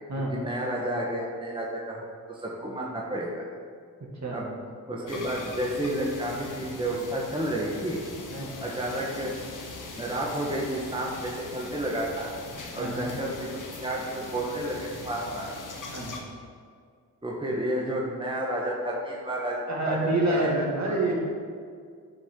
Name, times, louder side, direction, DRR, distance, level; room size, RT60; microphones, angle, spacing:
voice 1, 0.3-2.0 2.3-3.4 4.3-4.6 4.9-8.0 8.6-9.4 10.0-12.3 12.7-15.5 17.2-20.5 20.9-21.1, right 1 dB, 15° right, -3 dB, 1.5 m, -31 dB
sound 1, 5.1-16.2, left 3 dB, 50° left, 1.3 m, -41 dB
voice 2, 12.8-13.1 15.8-16.1 19.7-21.2, right 2 dB, 45° right, -2 dB, 2.2 m, -27 dB
11.0 x 5.0 x 3.9 m, 2.1 s
supercardioid pair, 45°, 39 cm